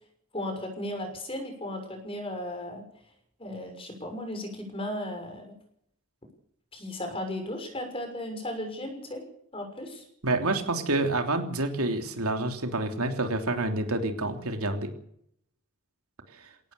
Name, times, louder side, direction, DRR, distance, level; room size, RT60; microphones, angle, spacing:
voice 1, 0.3-2.8 3.4-5.5 6.7-9.2 9.5-10.0, left 1 dB, 25° left, 5 dB, 6.3 m, -35 dB
voice 2, 10.2-14.9, right 2 dB, 85° right, 5 dB, 3.2 m, -28 dB
22.0 x 18.0 x 6.9 m, 0.70 s
head